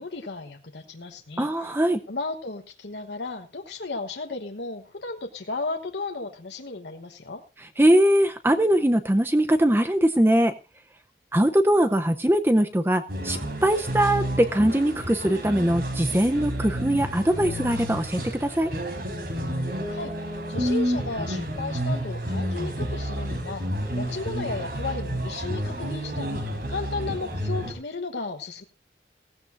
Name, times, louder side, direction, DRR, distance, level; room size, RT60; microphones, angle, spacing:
voice 1, 0.0-1.7 2.1-7.4 19.9-26.4 26.7-28.6, left 3 dB, 85° left, 3 dB, 1.2 m, -34 dB
voice 2, 1.4-2.0 7.8-10.5 11.3-18.7, right 1 dB, 15° right, 8 dB, 0.7 m, -21 dB
sound 1, 13.1-27.7, equal, 60° right, 4.1 m, -30 dB
17.0 x 15.5 x 2.6 m, 0.30 s
head